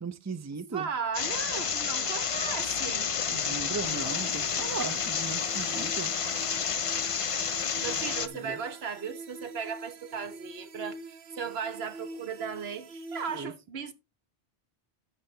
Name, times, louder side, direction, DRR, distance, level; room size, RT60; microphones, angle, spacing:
voice 1, 0.0-0.9 3.3-6.1 8.3-8.6 13.3-13.5, right 5 dB, 20° right, 0.6 m, -37 dB
voice 2, 0.7-3.1 7.8-13.9, right 6 dB, 80° right, 1.3 m, -36 dB
sound 1, 1.1-8.3, left 6 dB, 40° left, 0.5 m, -30 dB
sound 2, 3.8-13.4, right 2 dB, 65° right, 0.9 m, -46 dB
9.9 x 7.4 x 3.3 m
omnidirectional pair, 1.0 m